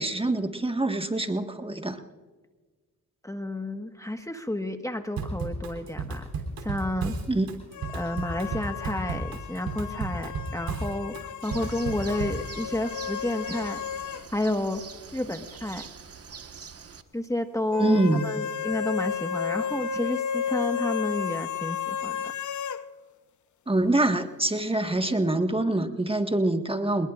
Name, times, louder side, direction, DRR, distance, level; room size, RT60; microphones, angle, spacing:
voice 1, 0.0-2.0 7.3-7.5 17.8-18.2 23.7-27.1, right 2 dB, 15° right, 6 dB, 1.6 m, -25 dB
voice 2, 3.2-6.2 6.6-7.1 7.9-11.2 11.4-13.8 14.3-14.8 15.1-15.8 17.1-22.2, left 1 dB, 10° left, 6 dB, 1.4 m, -30 dB
Drum kit / Drum, 5.2-12.5, right 4 dB, 90° right, 3.3 m, -33 dB
sound 1, 7.7-14.3 14.6-14.7 17.7-22.8, left 7 dB, 60° left, 0.9 m, -33 dB
Bird, 11.4-17.0, right 6 dB, 45° right, 1.5 m, -44 dB
27.0 x 20.5 x 2.5 m, 1.4 s
cardioid pair, 65°, 34 cm